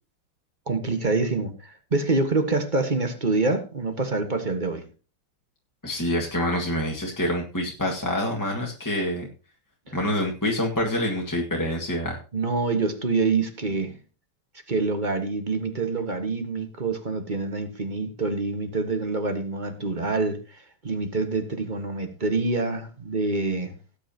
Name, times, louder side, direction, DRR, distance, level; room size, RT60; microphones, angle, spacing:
voice 1, 0.7-4.8 9.9-10.0 12.3-14.0 14.7-23.7, right 3 dB, 25° right, 1.3 m, -26 dB
voice 2, 5.8-9.3 9.9-12.2, left 1 dB, 10° left, 1.6 m, -26 dB
18.5 x 8.6 x 2.9 m
omnidirectional pair, 2.4 m